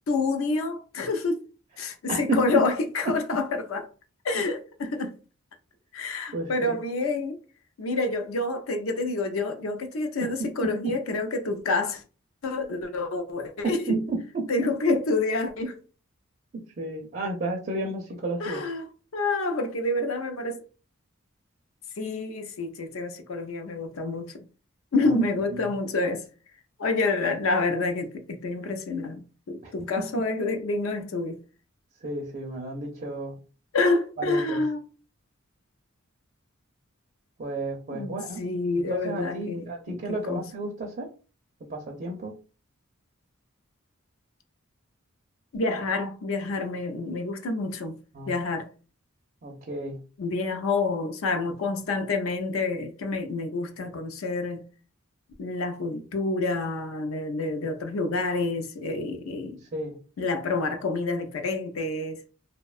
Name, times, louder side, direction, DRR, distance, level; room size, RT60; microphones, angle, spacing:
voice 1, 0.1-1.4 1.8-3.9 4.2-5.2 5.9-7.4 7.8-12.0 12.4-14.0 14.5-15.8 18.4-18.9 19.1-20.6 22.0-24.4 24.9-26.3 26.8-31.4 33.7-34.8 37.9-40.5 45.5-48.0 48.3-48.7 50.2-54.7 55.4-59.6 60.2-62.2, left 3 dB, 70° left, 0.5 m, -28 dB
voice 2, 2.1-2.6 3.1-3.2 6.3-6.7 10.4-10.9 13.6-14.1 14.3-14.5 16.5-18.6 25.1-25.2 29.6-30.2 32.0-33.4 34.2-34.6 37.4-38.4 38.7-41.1 41.6-42.4 48.1-48.3 49.4-50.0 59.7-60.0, right 2 dB, 40° right, 0.4 m, -32 dB
2.6 x 2.1 x 2.3 m
head